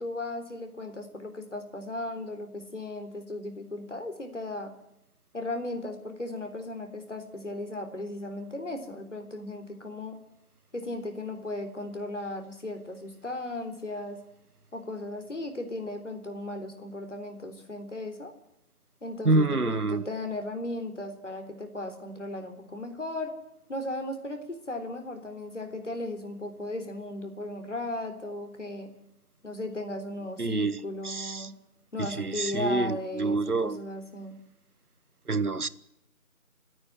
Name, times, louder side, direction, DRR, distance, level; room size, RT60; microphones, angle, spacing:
voice 1, 0.0-4.7 5.3-10.2 10.7-14.2 14.7-18.3 19.0-23.3 23.7-28.9 29.4-31.6 31.9-34.4, left 2 dB, 55° left, 3.8 m, -36 dB
voice 2, 19.2-20.0 30.4-30.8 31.0-31.5 32.0-33.8 35.3-35.7, right 3 dB, 90° right, 1.3 m, -27 dB
29.0 x 9.7 x 10.0 m
figure-of-eight pair, 170°, 43 cm